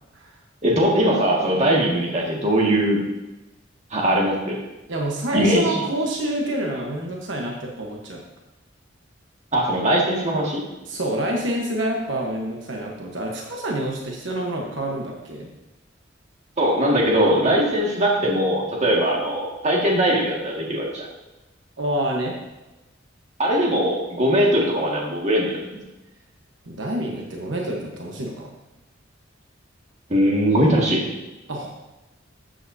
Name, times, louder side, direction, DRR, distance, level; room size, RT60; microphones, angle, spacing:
voice 1, 0.6-3.0 3.9-4.6 5.3-5.8 9.5-10.6 16.6-21.1 23.4-25.7 30.1-31.0, equal, 35° right, -2 dB, 2.0 m, -20 dB
voice 2, 4.9-8.2 10.9-15.5 21.8-22.4 26.6-28.5 31.5-31.7, right 1 dB, 75° right, -1 dB, 1.2 m, -27 dB
13.0 x 7.8 x 2.8 m, 1.0 s
head